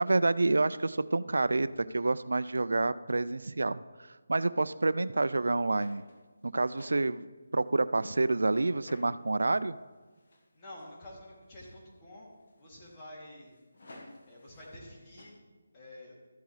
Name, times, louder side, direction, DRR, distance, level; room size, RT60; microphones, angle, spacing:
voice 1, 0.0-1.7 1.9-3.8 4.3-6.0 6.4-7.2 7.5-9.8, right 2 dB, 80° right, 16 dB, 0.3 m, -28 dB
sound 1, 5.8-7.2 7.7-9.1 9.5-9.9 10.1-11.2 11.5-11.8 12.3-14.9 15.2-15.4, left 1 dB, 60° left, 1.5 m, -55 dB
voice 2, 10.5-12.3 12.6-13.5 14.3-15.3 15.7-16.1, left 1 dB, 25° left, -5 dB, 2.6 m, -49 dB
13.5 x 8.1 x 3.2 m, 1.4 s
figure-of-eight pair, 160°, 0 cm